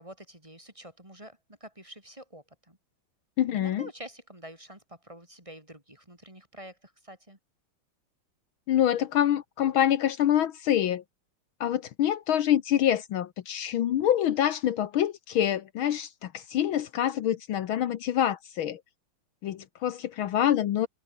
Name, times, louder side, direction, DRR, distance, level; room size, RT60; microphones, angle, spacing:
voice 1, 0.0-2.8 3.5-7.4, right 1 dB, 15° right, 4.2 m, -47 dB
voice 2, 3.4-3.9 8.7-11.0 11.6-18.8 19.4-20.9, left 11 dB, 70° left, 1.8 m, -26 dB
omnidirectional pair, 2.4 m